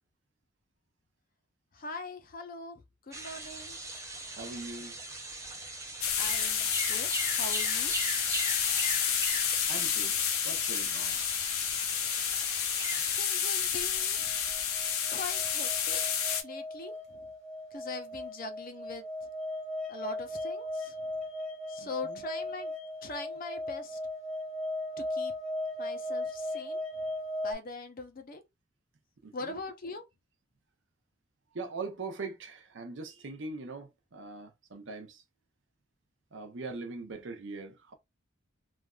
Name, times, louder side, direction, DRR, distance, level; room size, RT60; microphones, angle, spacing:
voice 1, 1.7-3.8 6.2-7.9 13.1-14.3 15.1-16.0 16.4-17.3 17.7-19.3 19.9-21.1 21.7-22.7 23.0-24.0 25.0-25.3 25.8-26.8 27.4-28.4 29.3-30.0, left 3 dB, 45° left, 0.5 m, -42 dB
sound 1, 3.1-13.2, right 2 dB, 15° right, 0.5 m, -39 dB
voice 2, 4.3-5.0 9.7-10.2 10.4-11.2 21.8-22.2 29.2-29.5 31.5-35.2 36.3-37.9, right 3 dB, 60° right, 0.6 m, -41 dB
sound 2, 6.0-16.4, left 8 dB, 80° left, 0.7 m, -30 dB
sound 3, 14.2-27.5, left 1 dB, 5° left, 1.0 m, -37 dB
3.2 x 2.4 x 2.3 m
head